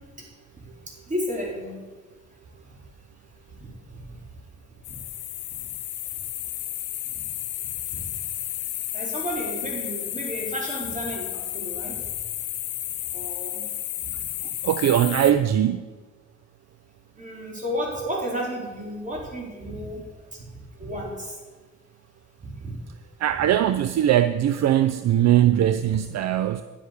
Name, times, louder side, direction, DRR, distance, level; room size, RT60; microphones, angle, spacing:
voice 1, 1.1-1.7 3.6-4.0 4.9-5.0 7.9-8.0 8.9-12.0 13.1-13.6 14.0-14.1 17.2-20.0 20.3-20.4 20.8-21.4 22.4-22.7, equal, 25° right, -3 dB, 4.5 m, -32 dB
sound 1, 4.8-15.3, left 12 dB, 80° left, 1.0 m, -32 dB
voice 2, 14.6-15.8 23.2-26.6, right 11 dB, 60° right, 11 dB, 0.5 m, -20 dB
10.0 x 8.3 x 6.8 m, 1.3 s
cardioid pair, 90°, 30 cm